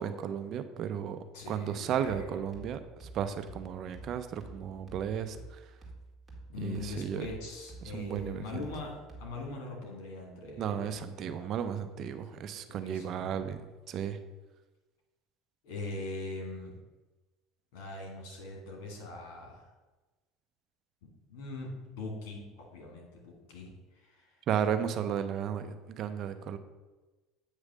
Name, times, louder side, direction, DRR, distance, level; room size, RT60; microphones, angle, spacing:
voice 1, 0.0-5.6 6.6-7.3 7.9-8.7 10.6-14.2 24.5-26.6, right 8 dB, 50° right, 10 dB, 0.6 m, -34 dB
voice 2, 1.3-2.4 6.5-8.9 9.2-11.5 12.2-12.3 12.7-13.5 15.6-16.7 17.7-19.7 21.3-24.4, left 2 dB, 75° left, 0 dB, 2.5 m, -42 dB
sound 1, 2.1-9.6, right 3 dB, 10° right, 2.0 m, -50 dB
8.3 x 3.2 x 6.3 m, 1.2 s
supercardioid pair, 105°, 0 cm